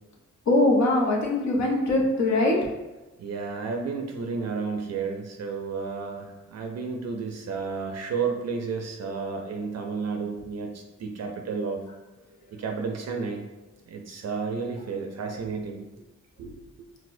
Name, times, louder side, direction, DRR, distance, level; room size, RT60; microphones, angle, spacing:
voice 1, 0.5-2.6, left 2 dB, 60° left, -1 dB, 0.8 m, -22 dB
voice 2, 3.2-11.8 12.5-13.4 13.9-15.8 16.4-16.6, right 5 dB, 55° right, 3 dB, 0.5 m, -32 dB
4.1 x 2.1 x 2.6 m, 1.1 s
cardioid pair, 65°, 31 cm